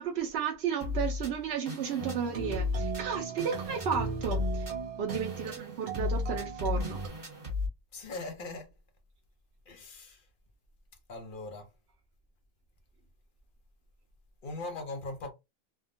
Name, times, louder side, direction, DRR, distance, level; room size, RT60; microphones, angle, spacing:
voice 1, 0.0-4.7 5.0-7.0, right 7 dB, 85° right, 0.9 m, -33 dB
sound 1, 0.8-7.7, left 4 dB, 20° right, 1.1 m, -35 dB
sound 2, 2.0-7.1, right 5 dB, 50° right, 0.4 m, -38 dB
voice 2, 7.9-8.7 9.7-10.3 11.1-11.7 14.4-15.3, left 2 dB, 55° left, 0.9 m, -40 dB
3.4 x 2.1 x 2.5 m
omnidirectional pair, 1.0 m